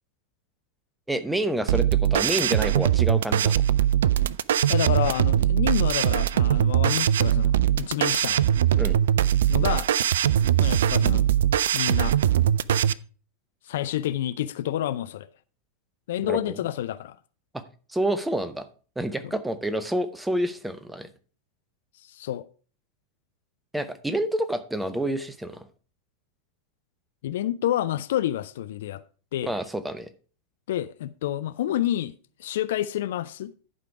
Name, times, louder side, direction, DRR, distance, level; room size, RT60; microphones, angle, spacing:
voice 1, 1.1-3.6 8.8-9.0 16.2-16.6 17.5-17.6 17.9-18.7 19.0-21.1 23.7-25.6 29.4-30.1, right 1 dB, 5° right, 0.8 m, -28 dB
sound 1, 1.7-12.9, right 10 dB, 60° right, 0.3 m, -21 dB
voice 2, 4.7-8.4 9.5-9.9 10.6-11.3 11.7-12.3 13.7-15.3 16.1-17.2 19.2-19.3 22.0-22.4 27.2-29.0 29.3-29.7 30.7-32.1 32.4-33.5, left 12 dB, 55° left, 0.4 m, -29 dB
11.0 x 5.1 x 4.7 m
figure-of-eight pair, 90°, 0 cm